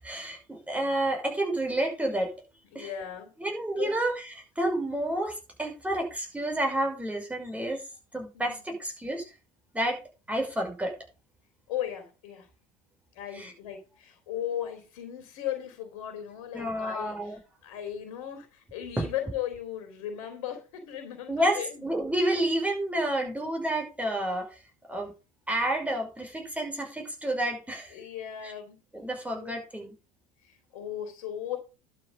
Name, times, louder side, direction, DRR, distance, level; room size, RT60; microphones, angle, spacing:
voice 1, 0.0-2.3 2.7-2.9 3.4-7.8 8.1-9.2 9.7-10.0 10.3-10.9 13.3-13.5 16.5-17.4 19.0-19.1 21.3-24.6 24.9-25.1 25.5-27.9 28.4-28.5 28.9-29.9, right 1 dB, 10° right, 1 dB, 5.6 m, -30 dB
voice 2, 2.7-3.3 3.8-3.9 8.3-8.6 11.7-12.5 13.1-21.8 27.9-28.8 29.3-29.6 30.4-31.6, left 10 dB, 70° left, 6 dB, 3.2 m, -37 dB
11.5 x 6.9 x 5.5 m, 0.31 s
hypercardioid pair, 75°, 18 cm